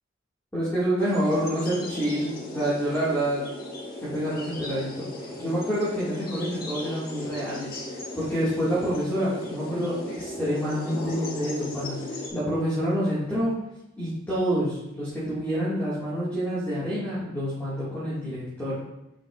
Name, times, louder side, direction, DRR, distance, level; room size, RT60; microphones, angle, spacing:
voice 1, 0.5-3.5 4.0-13.5 14.0-18.8, equal, 10° left, -11 dB, 1.7 m, -28 dB
sound 1, 1.0-12.3, left 1 dB, 50° left, 1.3 m, -37 dB
8.9 x 5.3 x 2.4 m, 0.88 s
head